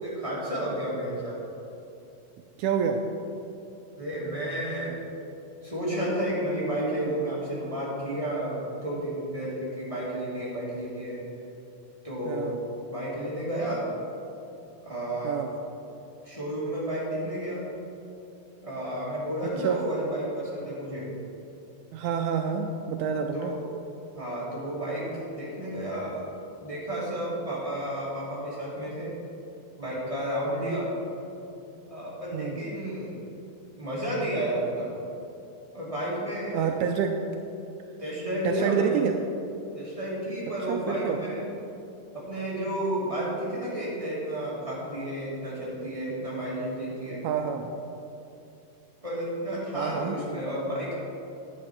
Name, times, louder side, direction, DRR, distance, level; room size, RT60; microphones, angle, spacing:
voice 1, 0.0-1.4 4.0-4.9 5.6-8.6 8.8-11.2 12.0-12.5 12.9-13.9 14.8-15.4 16.2-17.6 18.6-21.1 23.3-23.6 24.1-26.2 26.6-29.1 29.8-30.9 31.9-33.2 33.8-34.9 35.7-36.7 38.0-39.0 39.7-41.4 42.1-47.2 49.0-51.0, right 1 dB, 10° right, -8 dB, 2.1 m, -31 dB
voice 2, 2.6-3.0 12.3-12.6 15.2-15.5 19.6-19.8 21.9-23.5 32.3-32.6 36.5-37.1 38.4-39.2 40.7-41.2 47.2-47.7 49.7-50.2, right 7 dB, 90° right, 4 dB, 1.7 m, -27 dB
10.0 x 8.8 x 4.7 m, 2.8 s
omnidirectional pair, 4.0 m